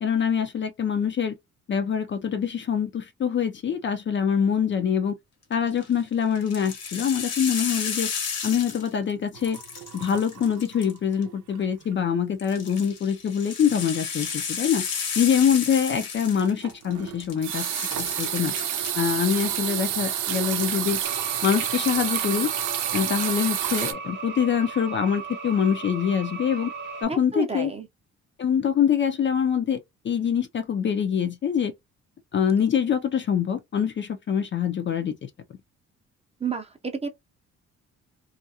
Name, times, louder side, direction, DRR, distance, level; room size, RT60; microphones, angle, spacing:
voice 1, 0.0-1.3 1.7-5.1 5.5-8.1 8.4-9.6 9.9-14.9 15.2-17.7 18.0-18.5 19.0-21.0 21.4-22.5 22.9-26.7 27.0-27.7 28.4-29.8 30.0-31.7 32.3-35.3, left 8 dB, 40° left, 0.4 m, -24 dB
sound 1, 5.5-5.9 6.3-9.1 9.4-11.2 12.4-16.9 17.2-18.9 19.3-19.7, left 6 dB, 55° left, 1.0 m, -33 dB
sound 2, 9.3-11.0 11.3-11.6 11.9-12.0 16.6-23.9, right 10 dB, 85° right, 0.6 m, -29 dB
sound 3, 21.0-27.0, right 4 dB, 40° right, 1.0 m, -37 dB
voice 2, 27.1-27.9 36.4-37.1, right 5 dB, 20° right, 0.6 m, -30 dB
2.4 x 2.2 x 2.7 m
cardioid pair, 90°, 30 cm